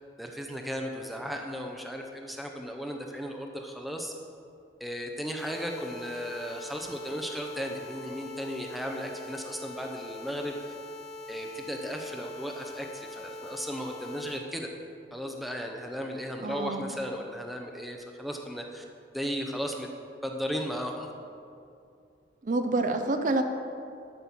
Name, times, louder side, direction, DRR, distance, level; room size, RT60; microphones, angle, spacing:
voice 1, 0.2-4.1 4.8-10.6 11.3-14.7 15.1-18.8 19.1-19.9 20.2-21.1, equal, ahead, 2 dB, 0.7 m, -35 dB
sound 1, 5.4-14.4, left 1 dB, 35° left, 1.0 m, -43 dB
voice 2, 16.4-16.8 22.4-23.4, right 2 dB, 40° right, 6 dB, 0.5 m, -27 dB
12.0 x 5.5 x 6.1 m, 2.5 s
head